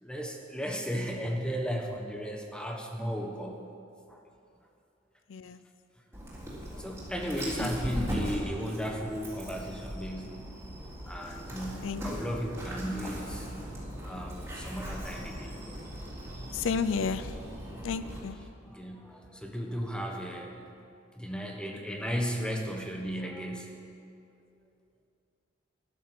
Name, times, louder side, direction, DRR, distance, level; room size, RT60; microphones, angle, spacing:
voice 1, 0.0-3.6 4.1-4.2 6.7-10.5 11.1-13.5 14.0-15.5 18.6-20.6 21.2-23.8, equal, 5° left, 1 dB, 1.3 m, -35 dB
Dog, 6.1-18.2, equal, 10° right, 3.8 m, -39 dB
voice 2, 16.5-17.3 17.8-18.4, left 5 dB, 75° left, 13 dB, 0.5 m, -31 dB
14.0 x 11.0 x 6.1 m, 2.5 s
head